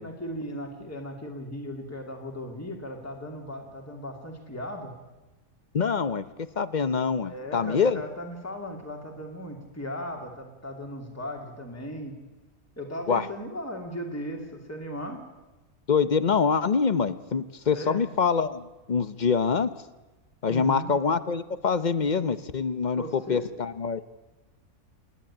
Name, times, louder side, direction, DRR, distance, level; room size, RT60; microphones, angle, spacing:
voice 1, 0.0-4.9 7.2-12.1 12.8-15.2 17.7-18.0 20.5-20.9 23.0-23.5, equal, 10° left, 2 dB, 2.7 m, -37 dB
voice 2, 5.7-6.2 6.6-8.0 13.1-13.3 15.9-19.7 20.4-24.0, left 5 dB, 40° left, 14 dB, 0.7 m, -25 dB
28.5 x 10.5 x 9.9 m, 1.1 s
omnidirectional pair, 1.5 m